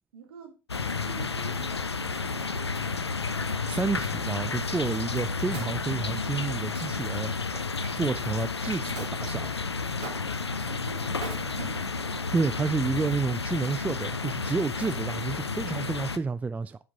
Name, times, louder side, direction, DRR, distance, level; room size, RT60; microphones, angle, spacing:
voice 1, 0.1-0.6 1.0-3.2 10.6-12.3, right 6 dB, 65° right, 1.8 m, -48 dB
sound 1, 0.7-16.2, left 4 dB, 85° left, 0.5 m, -31 dB
voice 2, 3.7-7.3 7.9-9.6 12.3-16.8, right 4 dB, 10° right, 0.4 m, -30 dB
Wood, 5.1-7.9 9.0-9.2 10.0-10.5 11.1-12.1 12.8-12.9, right 5 dB, 50° right, 3.6 m, -43 dB
9.3 x 5.7 x 3.7 m
figure-of-eight pair, 70°, 14 cm